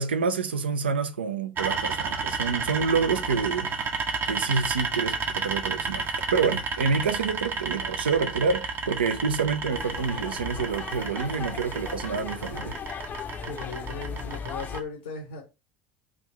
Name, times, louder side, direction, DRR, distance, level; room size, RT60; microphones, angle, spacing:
voice 1, 0.0-4.0 4.2-12.8, right 5 dB, 85° right, 0.3 m, -28 dB
sound 1, 1.6-14.8, right 4 dB, 40° right, 0.7 m, -32 dB
sound 2, 9.7-14.8, left 6 dB, 35° left, 0.5 m, -37 dB
voice 2, 13.5-15.4, left 4 dB, 90° left, 0.8 m, -37 dB
3.4 x 2.4 x 3.0 m
hypercardioid pair, 70°, 6 cm